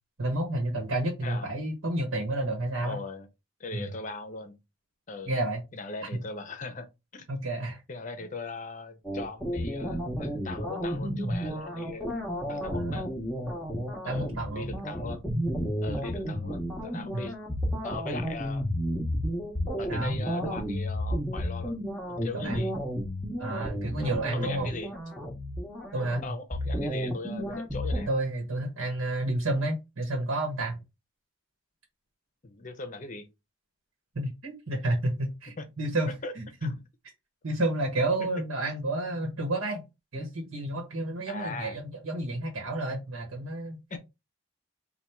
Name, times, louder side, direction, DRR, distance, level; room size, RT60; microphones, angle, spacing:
voice 1, 0.2-3.0 3.7-3.9 5.3-5.6 6.1-6.2 7.3-7.8 12.7-13.1 14.1-14.7 15.5-15.6 17.1-17.3 19.9-20.2 22.3-22.7 23.4-24.7 25.9-26.2 28.1-30.8 34.1-36.7 37.4-39.9 40.1-44.0, right 1 dB, 80° right, 1.1 m, -30 dB
voice 2, 2.8-3.3 3.6-4.6 5.1-5.3 5.7-6.9 7.1-7.3 7.9-13.1 14.0-15.3 15.8-17.4 17.8-18.7 19.8-22.7 24.0-24.9 26.0-28.1 32.4-33.3 35.6-35.7 36.2-36.3 36.6-36.8 38.2-38.3 41.3-41.8 43.9-44.0, left 3 dB, 40° left, 0.6 m, -39 dB
sound 1, 9.0-28.0, equal, ahead, 0.8 m, -32 dB
3.4 x 2.3 x 4.3 m
head